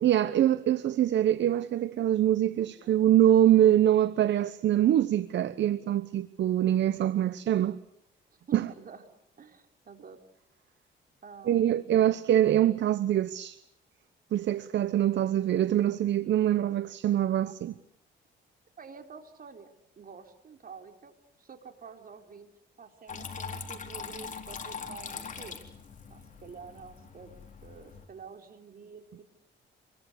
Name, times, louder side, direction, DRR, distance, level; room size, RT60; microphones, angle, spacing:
voice 1, 0.0-7.8 8.5-8.7 11.5-13.6 14.3-17.7, right 11 dB, 65° right, 1.0 m, -24 dB
voice 2, 2.5-3.3 8.5-9.0 9.4-10.2 11.2-12.2 17.4-17.6 18.8-22.5 22.8-25.6 26.1-27.3 27.6-29.2, right 5 dB, 45° right, 4.0 m, -49 dB
Water tap faucet / Trickle dribble, 23.1-28.1, left 5 dB, 40° left, 4.0 m, -42 dB
27.0 x 22.0 x 8.3 m
cardioid pair, 90°, 20 cm